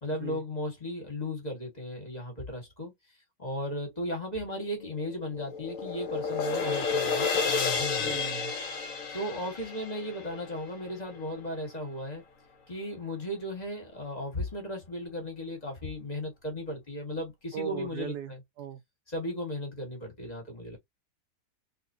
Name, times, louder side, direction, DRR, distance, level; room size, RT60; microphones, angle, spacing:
voice 1, 0.0-2.9 3.4-8.2 9.1-12.2 12.7-18.4 19.1-20.8, left 1 dB, 25° left, 1.9 m, -36 dB
sound 1, 4.8-11.1, left 5 dB, 60° left, 1.4 m, -31 dB
voice 2, 8.0-8.5 17.5-18.8, right 8 dB, 80° right, 1.2 m, -38 dB
4.0 x 3.5 x 2.8 m
omnidirectional pair, 1.7 m